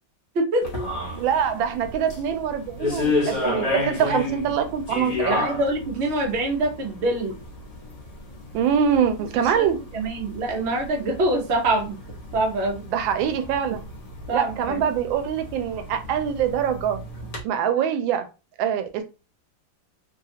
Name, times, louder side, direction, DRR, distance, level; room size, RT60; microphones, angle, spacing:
voice 1, 0.3-0.7 4.1-4.2 5.3-7.4 9.3-12.0 12.3-12.8 13.7-13.8 14.3-14.8, right 2 dB, 50° right, 0.9 m, -25 dB
sound 1, 0.6-17.4, left 2 dB, 50° left, 1.3 m, -32 dB
voice 2, 1.2-5.3 8.5-9.8 12.9-13.8 14.3-17.0 17.4-18.3 18.6-19.0, right 8 dB, 85° right, 1.3 m, -24 dB
3.3 x 2.3 x 2.8 m
omnidirectional pair, 2.1 m